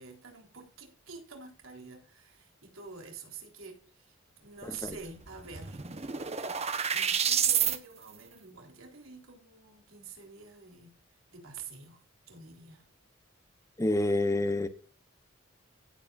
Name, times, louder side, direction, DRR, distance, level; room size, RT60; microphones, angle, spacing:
voice 1, 0.0-6.6 6.9-10.9 11.3-12.8, right 4 dB, 75° right, 3.8 m, -48 dB
voice 2, 4.6-5.0 13.8-14.7, left 2 dB, 15° left, 0.7 m, -28 dB
sound 1, 4.9-5.0 5.3-7.8, right 8 dB, 30° right, 1.0 m, -29 dB
16.5 x 8.2 x 2.5 m
head